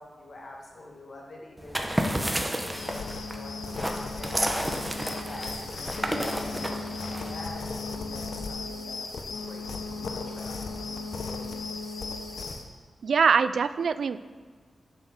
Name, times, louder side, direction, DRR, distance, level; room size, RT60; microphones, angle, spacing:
voice 1, 0.0-11.7, left 1 dB, 55° left, -1 dB, 2.1 m, -46 dB
sound 1, 1.6-7.7, right 1 dB, 10° right, 1.0 m, -31 dB
sound 2, 2.7-12.7, left 3 dB, 85° left, 0.8 m, -36 dB
voice 2, 13.0-14.2, right 6 dB, 80° right, 14 dB, 0.3 m, -23 dB
7.7 x 6.5 x 6.5 m, 1.5 s
wide cardioid pair, 80°, 0 cm